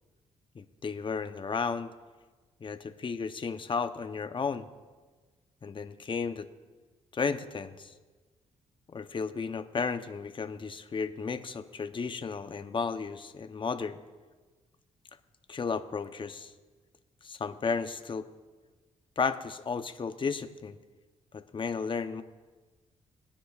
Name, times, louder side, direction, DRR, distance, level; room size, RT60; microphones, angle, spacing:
voice 1, 0.5-1.9 2.6-4.7 5.6-6.5 7.1-7.9 8.9-14.0 15.5-16.5 17.2-18.3 19.2-20.8 21.3-22.2, left 5 dB, 40° left, 10 dB, 0.8 m, -33 dB
21.5 x 9.9 x 2.4 m, 1.3 s
cardioid pair, 70°, 14 cm